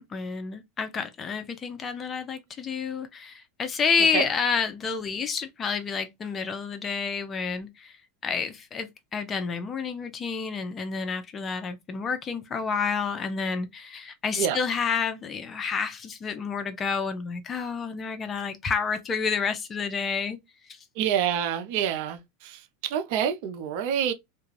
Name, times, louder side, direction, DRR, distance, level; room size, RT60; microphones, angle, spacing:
voice 1, 0.0-7.9 8.2-20.4, left 5 dB, 30° left, 0.6 m, -29 dB
voice 2, 20.9-24.1, right 9 dB, 65° right, 0.5 m, -27 dB
2.4 x 2.2 x 3.1 m
hypercardioid pair, 110°, 0 cm